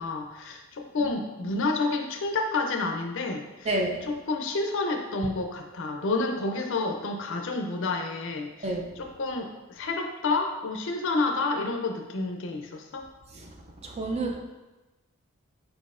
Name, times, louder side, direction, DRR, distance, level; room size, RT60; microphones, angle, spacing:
voice 1, 0.0-3.7 4.3-8.7 9.0-13.1, left 3 dB, 60° left, 4 dB, 0.5 m, -29 dB
voice 2, 3.6-4.1 8.6-9.0 13.3-13.5 13.8-14.4, right 2 dB, 30° right, 2 dB, 0.4 m, -30 dB
4.8 x 4.0 x 2.5 m, 1.1 s
head